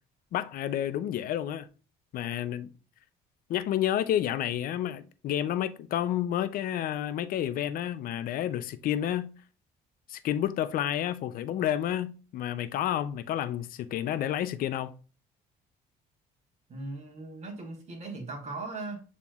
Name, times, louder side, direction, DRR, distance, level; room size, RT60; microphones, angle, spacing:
voice 1, 0.3-1.7 2.1-2.7 3.5-9.3 10.1-15.0, left 11 dB, 60° left, 0.4 m, -30 dB
voice 2, 16.7-19.0, right 3 dB, 40° right, 1.5 m, -38 dB
6.9 x 3.0 x 2.4 m
cardioid pair, 110°, 17 cm